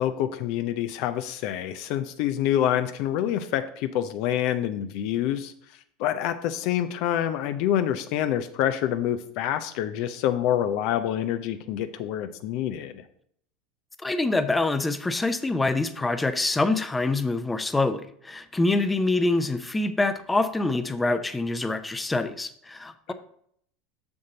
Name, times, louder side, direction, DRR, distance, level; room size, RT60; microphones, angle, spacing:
voice 1, 0.0-5.5 6.0-13.0 23.1-23.2, left 11 dB, 55° left, 10 dB, 0.5 m, -27 dB
voice 2, 14.0-23.1, left 2 dB, 15° left, 11 dB, 0.7 m, -25 dB
7.0 x 6.5 x 4.0 m, 0.66 s
figure-of-eight pair, 75°, 0 cm